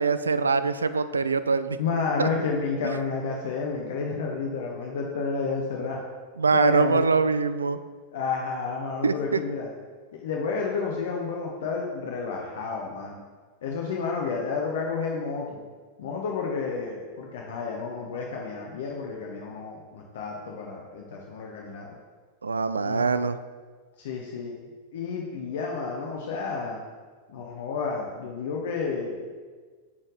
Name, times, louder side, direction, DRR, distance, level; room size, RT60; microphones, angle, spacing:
voice 1, 0.0-1.8 2.2-2.3 6.4-7.8 9.0-9.4 22.4-23.4, right 4 dB, 75° right, 12 dB, 0.3 m, -23 dB
voice 2, 1.8-6.0 6.5-7.0 8.1-9.7 10.1-13.2 13.6-15.6 16.0-22.0 22.8-23.1 24.0-24.5 24.9-26.8 27.3-29.3, left 4 dB, 60° left, 0 dB, 0.8 m, -31 dB
7.1 x 4.5 x 4.8 m, 1.5 s
figure-of-eight pair, 90°, 0 cm